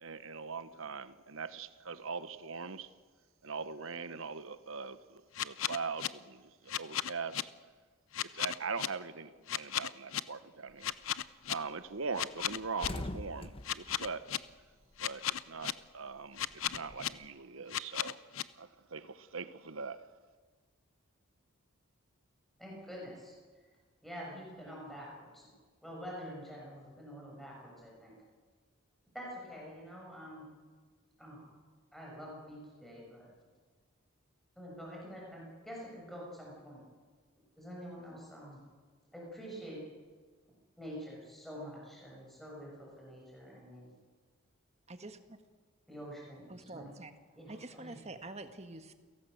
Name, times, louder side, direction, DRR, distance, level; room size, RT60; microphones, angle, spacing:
voice 1, 0.0-2.9 3.4-7.4 8.3-11.0 11.5-14.2 15.0-18.2 18.6-20.0, right 4 dB, 70° right, 1.1 m, -41 dB
sound 1, 5.3-6.1 6.7-7.4 8.1-8.9 9.5-10.2 10.8-11.5 12.2-12.9 13.6-14.4 15.0-15.7 16.4-17.1 17.7-18.4, left 11 dB, 70° left, 0.7 m, -34 dB
sound 2, 10.7-11.0 11.4-11.6 11.8-12.0 12.3-15.3 15.6-17.2, left 1 dB, 25° left, 1.1 m, -44 dB
voice 2, 22.6-23.4 24.0-25.4 25.8-28.1 29.1-30.5 31.2-31.5 31.9-33.3 34.6-36.8 37.6-38.6 39.1-39.8 40.8-43.9 45.9-46.9 47.4-48.0, equal, ahead, 6.9 m, -47 dB
voice 3, 44.9-45.4 46.5-47.1 47.5-48.9, right 2 dB, 30° right, 1.5 m, -46 dB
29.0 x 17.5 x 7.9 m
head